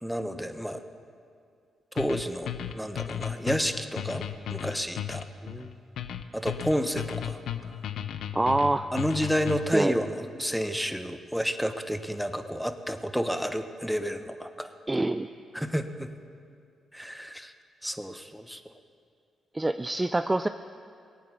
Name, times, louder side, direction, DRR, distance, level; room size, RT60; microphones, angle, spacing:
voice 1, 0.0-0.8 1.9-5.2 6.3-7.4 8.9-14.7 15.5-16.1 16.9-17.5 17.8-18.6, equal, ahead, 8 dB, 1.2 m, -30 dB
sound 1, 2.0-9.9, left 10 dB, 75° left, 0.7 m, -35 dB
voice 2, 8.3-8.9 9.7-9.9 14.9-15.3 19.5-20.5, right 2 dB, 20° right, 10 dB, 0.5 m, -26 dB
19.5 x 8.8 x 6.9 m, 2.3 s
supercardioid pair, 50°, 0 cm